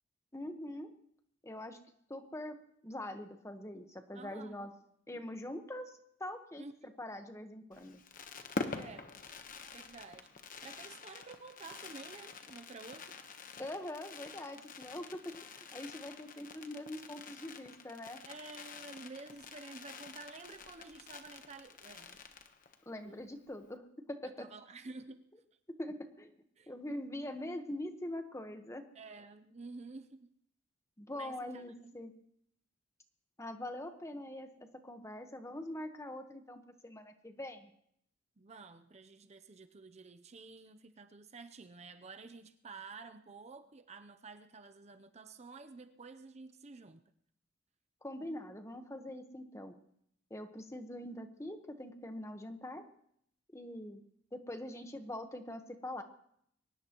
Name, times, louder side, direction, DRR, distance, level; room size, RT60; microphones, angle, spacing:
voice 1, 0.3-0.9 1.4-1.8 2.1-2.6 2.8-4.7 5.1-8.0 13.6-18.2 22.9-24.5 25.8-26.4 26.7-28.8 31.0-32.1 33.4-34.5 34.8-37.7 48.0-49.7 50.3-52.8 53.5-54.0 54.3-56.0, left 1 dB, 15° left, 7 dB, 1.2 m, -43 dB
voice 2, 4.1-4.7 6.6-7.0 8.7-9.1 9.7-10.4 10.6-13.2 18.3-22.2 23.0-23.2 24.2-25.3 26.6-26.7 29.0-30.3 31.1-31.9 38.4-47.0, right 3 dB, 35° right, 8 dB, 0.6 m, -51 dB
Fireworks, 7.7-22.9 23.2-23.3 23.5-23.8, left 4 dB, 45° left, 1.1 m, -47 dB
23.0 x 18.5 x 3.0 m, 0.71 s
head